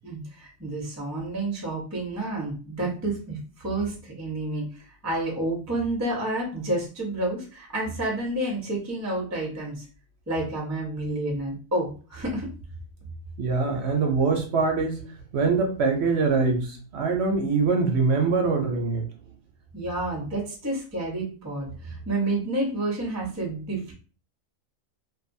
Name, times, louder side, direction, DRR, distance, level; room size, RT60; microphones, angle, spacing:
voice 1, 0.0-9.8 10.3-12.5 13.8-13.9 19.7-23.9, right 2 dB, 20° right, -3 dB, 0.5 m, -30 dB
voice 2, 13.4-15.0 15.3-19.1, right 4 dB, 65° right, 2 dB, 0.7 m, -23 dB
2.5 x 2.4 x 2.6 m, 0.37 s
omnidirectional pair, 1.4 m